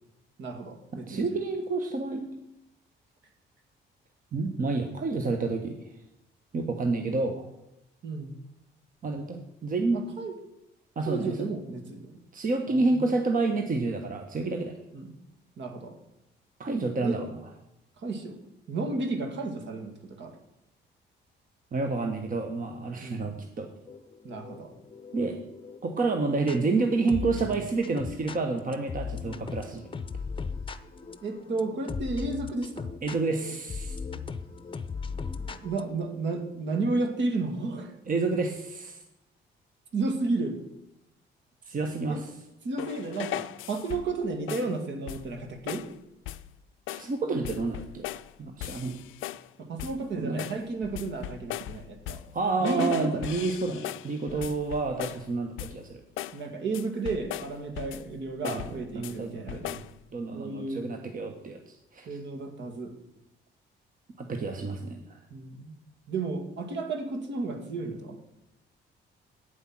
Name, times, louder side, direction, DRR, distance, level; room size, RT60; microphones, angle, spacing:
voice 1, 0.4-1.4 8.0-8.3 9.9-10.3 11.1-12.2 12.7-13.1 14.9-15.2 15.6-16.0 17.0-17.2 18.0-18.4 18.7-20.3 23.0-23.4 24.2-24.7 31.2-32.8 35.4-37.9 39.9-40.6 42.1-42.2 42.6-45.8 49.6-52.2 52.6-53.3 54.3-54.5 56.3-59.6 60.3-60.9 62.1-62.9 65.3-65.7 66.1-68.2, right 3 dB, 65° right, 5 dB, 2.1 m, -33 dB
voice 2, 1.1-2.3 4.3-5.8 6.5-7.5 9.0-10.1 11.0-11.3 12.3-14.8 16.6-17.4 21.7-23.7 25.1-25.4 25.8-29.8 33.0-34.0 38.1-39.0 41.7-42.3 46.9-49.0 50.2-50.4 52.3-56.0 58.4-58.6 58.9-59.8 60.1-62.1 64.2-65.2, right 3 dB, 45° right, 4 dB, 1.2 m, -29 dB
sound 1, 23.9-26.6 27.1-35.8, left 5 dB, 25° left, 0.7 m, -38 dB
sound 2, 42.8-44.2 44.5-44.8 45.1-45.4 45.7-45.9 46.3-46.5 46.9-47.1 47.4-48.3 48.6-49.5 49.8-50.1 50.4-52.4 52.6-55.3 55.6-55.9 56.2-56.4 56.7-58.1 58.4-59.2 59.5-59.9, left 13 dB, 85° left, 0.5 m, -38 dB
8.9 x 7.9 x 6.1 m, 0.85 s
cardioid pair, 90°, 20 cm